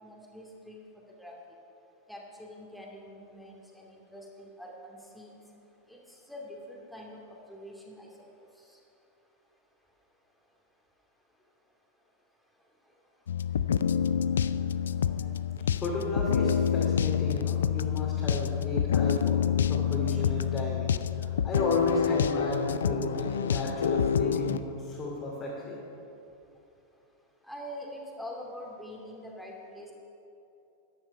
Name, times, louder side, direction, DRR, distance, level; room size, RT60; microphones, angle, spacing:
voice 1, 0.0-0.8 1.2-1.4 2.1-5.4 5.9-6.0 6.3-8.3 27.5-29.9, equal, ahead, -1 dB, 2.4 m, -44 dB
sound 1, 13.3-24.6, left 8 dB, 65° left, 0.4 m, -27 dB
voice 2, 15.0-25.8, left 1 dB, 30° left, -5 dB, 2.6 m, -35 dB
14.0 x 10.5 x 5.6 m, 2.8 s
figure-of-eight pair, 90°, 0 cm